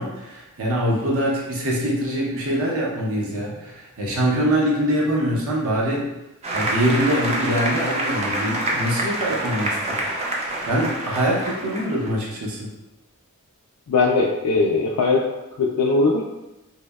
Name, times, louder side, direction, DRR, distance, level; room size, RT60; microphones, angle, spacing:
voice 1, 0.0-6.1 6.5-10.0 10.6-12.7, equal, 65° right, -3 dB, 0.6 m, -23 dB
Applause, 6.4-12.1, right 1 dB, 30° right, 0.4 m, -27 dB
voice 2, 13.9-15.2 15.6-16.2, left 3 dB, 70° left, -1 dB, 0.3 m, -19 dB
2.7 x 2.0 x 2.2 m, 0.96 s
head